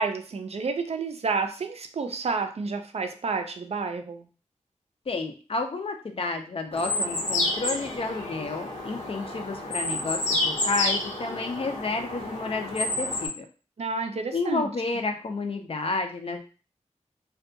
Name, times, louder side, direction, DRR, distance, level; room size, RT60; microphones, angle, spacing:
voice 1, 0.0-4.2 13.8-14.7, right 4 dB, 60° right, 6 dB, 0.4 m, -30 dB
voice 2, 5.1-13.5 14.3-16.5, left 3 dB, 50° left, 5 dB, 0.4 m, -31 dB
sound 1, 6.7-13.3, left 2 dB, 80° left, 0.9 m, -29 dB
2.6 x 2.2 x 2.6 m, 0.36 s
wide cardioid pair, 90°, 12 cm